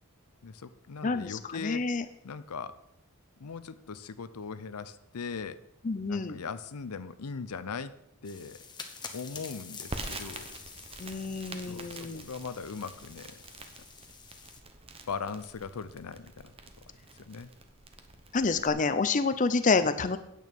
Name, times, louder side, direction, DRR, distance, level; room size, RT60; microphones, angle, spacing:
voice 1, 0.4-1.9 2.2-2.7 3.4-5.6 6.1-7.9 8.2-8.6 9.1-10.5 11.7-13.4 15.1-16.5 17.3-17.5, left 5 dB, 90° left, 13 dB, 0.6 m, -39 dB
voice 2, 1.0-2.0 5.8-6.4 11.0-12.2 18.3-20.2, left 4 dB, 35° left, 11 dB, 0.5 m, -28 dB
sound 1, 8.3-14.6, left 5 dB, 20° left, 0.9 m, -47 dB
Crackle, 9.9-18.7, right 2 dB, 25° right, 0.9 m, -46 dB
9.3 x 8.5 x 5.3 m, 0.80 s
head